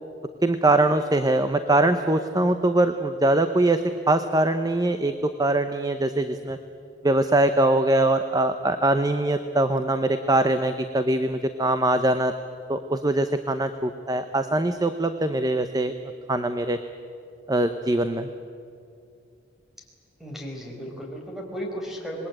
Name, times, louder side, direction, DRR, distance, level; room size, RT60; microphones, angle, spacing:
voice 1, 0.4-3.8 4.1-6.6 7.0-12.3 12.7-15.9 16.3-16.8 17.5-18.3, right 2 dB, 20° right, 9 dB, 0.8 m, -22 dB
voice 2, 20.2-22.3, equal, ahead, 0 dB, 4.9 m, -35 dB
26.0 x 20.5 x 8.9 m, 2.4 s
head